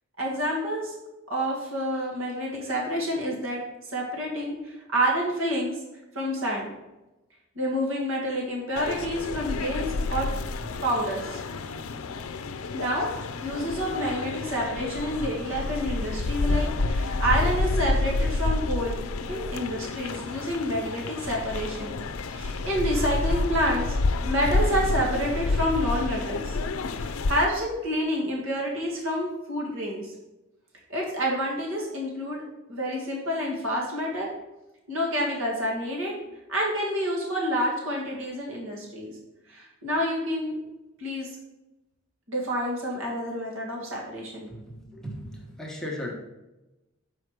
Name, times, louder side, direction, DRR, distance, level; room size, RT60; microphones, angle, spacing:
voice 1, 0.2-1.0 1.3-3.6 3.9-5.7 6.1-6.7 7.6-10.3 10.8-11.4 12.7-19.0 19.3-22.0 22.3-24.0 24.3-26.6 27.0-30.1 30.9-32.4 32.7-34.3 34.9-36.1 36.5-39.2 39.5-40.6 41.0-41.3 42.3-44.5, equal, 65° right, -2 dB, 2.1 m, -28 dB
sound 1, 8.8-27.4, left 3 dB, 80° left, 0.5 m, -29 dB
voice 2, 44.5-46.1, left 1 dB, ahead, -2 dB, 1.1 m, -37 dB
6.5 x 5.0 x 4.8 m, 0.99 s
head